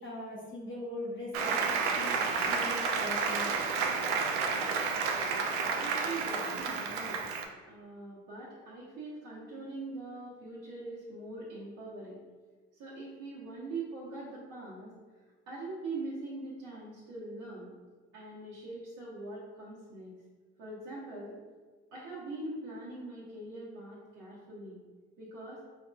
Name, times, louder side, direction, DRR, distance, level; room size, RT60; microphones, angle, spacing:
voice 1, 0.0-2.2 2.5-3.7, left 1 dB, 35° left, -4 dB, 0.8 m, -41 dB
Applause, 1.3-7.4, right 5 dB, 75° right, 0.5 m, -31 dB
voice 2, 5.7-7.2 7.6-12.2 12.7-14.9 15.5-17.7 18.1-20.1 20.6-21.4 21.9-24.8 25.2-25.6, right 2 dB, 60° right, -8 dB, 1.0 m, -42 dB
4.4 x 2.5 x 2.3 m, 1.4 s
hypercardioid pair, 50°, 35 cm